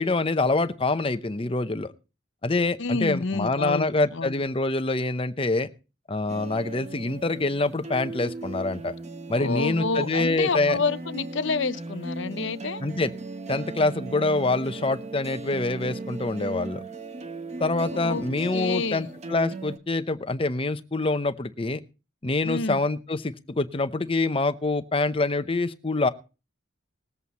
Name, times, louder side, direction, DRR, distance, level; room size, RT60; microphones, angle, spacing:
voice 1, 0.0-1.9 2.4-5.7 6.1-9.0 9.3-10.8 12.8-13.1 13.5-16.8 17.6-21.8 22.2-26.1, left 2 dB, 25° left, 0.7 m, -25 dB
voice 2, 2.8-4.3 9.4-12.8 17.9-18.2 18.5-19.1 22.4-22.8, left 4 dB, 65° left, 0.7 m, -28 dB
sound 1, 6.3-19.8, right 2 dB, 30° right, 1.0 m, -37 dB
20.0 x 7.9 x 4.1 m
head